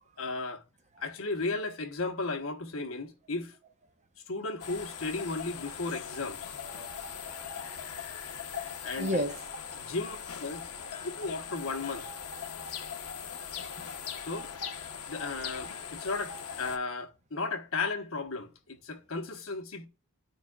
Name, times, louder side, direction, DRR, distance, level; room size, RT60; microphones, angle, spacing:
voice 1, 0.2-0.6 1.0-3.6 4.3-6.6 8.8-9.2 9.8-10.6 11.0-12.1 14.3-14.5 15.1-19.9, left 3 dB, 65° left, 1.1 m, -35 dB
sound 1, 4.6-16.8, left 7 dB, 90° left, 0.8 m, -40 dB
voice 2, 6.6-7.9 8.6-9.6, equal, 30° right, 0.9 m, -36 dB
12.5 x 4.8 x 2.3 m
head